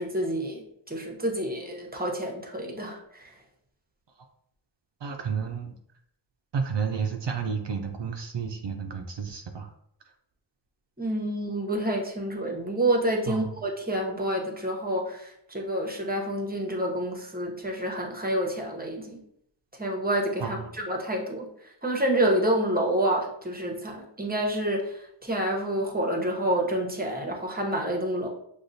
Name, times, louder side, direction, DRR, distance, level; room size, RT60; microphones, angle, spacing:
voice 1, 0.0-3.3 11.0-19.2 19.8-20.6 20.9-21.5 21.8-24.9 25.2-28.3, right 1 dB, 20° right, 1 dB, 0.9 m, -28 dB
voice 2, 5.0-5.8 6.5-9.7 13.3-13.5 20.4-20.7, right 6 dB, 65° right, 4 dB, 0.5 m, -31 dB
6.2 x 2.3 x 2.7 m, 0.72 s
wide cardioid pair, 55°, 46 cm